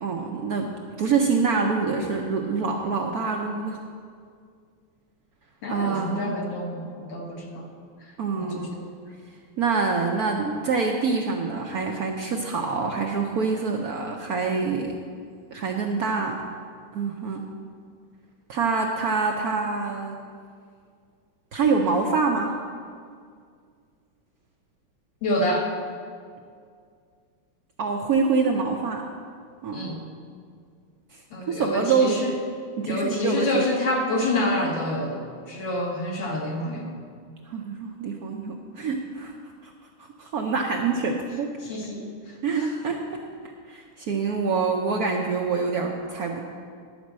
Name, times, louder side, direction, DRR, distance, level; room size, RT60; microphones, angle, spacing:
voice 1, 0.0-0.7 1.0-3.8 5.7-6.4 8.2-8.7 9.6-15.0 15.5-16.4 16.9-17.4 18.5-20.2 21.5-22.5 27.8-29.1 29.6-29.9 31.1-31.2 31.5-32.3 32.8-33.6 37.5-39.3 39.6-39.7 40.0-41.6 42.4-43.2 43.7-46.4, right 4 dB, 70° right, 2 dB, 0.9 m, -26 dB
voice 2, 5.6-7.7 8.4-8.8 25.2-25.7 29.7-30.0 31.3-32.4 32.9-36.9 41.6-42.8, left 1 dB, 65° left, -1 dB, 2.2 m, -28 dB
11.0 x 5.2 x 7.3 m, 2.1 s
omnidirectional pair, 2.3 m